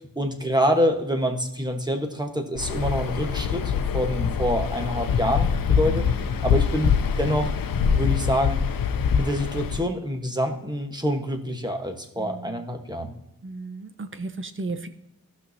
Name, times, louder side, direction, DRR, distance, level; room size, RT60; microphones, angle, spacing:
voice 1, 0.0-3.6 3.9-6.1 6.4-6.9 7.2-7.5 7.9-8.6 9.1-13.1, equal, 10° right, 4 dB, 1.3 m, -26 dB
Waves surf, 2.5-9.9, left 7 dB, 70° left, 0.7 m, -24 dB
voice 2, 5.9-6.3 12.2-12.6 13.4-14.9, right 3 dB, 35° right, 10 dB, 0.8 m, -35 dB
15.0 x 6.2 x 2.8 m, 0.85 s
wide cardioid pair, 80°, 35 cm